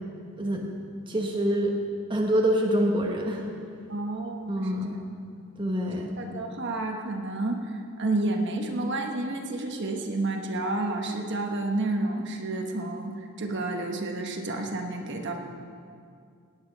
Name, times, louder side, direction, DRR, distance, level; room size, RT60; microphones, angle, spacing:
voice 1, 1.1-1.7 2.1-3.4 4.5-5.0 5.6-6.1, equal, 20° right, 0 dB, 1.0 m, -26 dB
voice 2, 3.9-4.7 5.9-15.3, right 2 dB, 55° right, 3 dB, 1.2 m, -30 dB
17.5 x 8.8 x 5.2 m, 2.3 s
head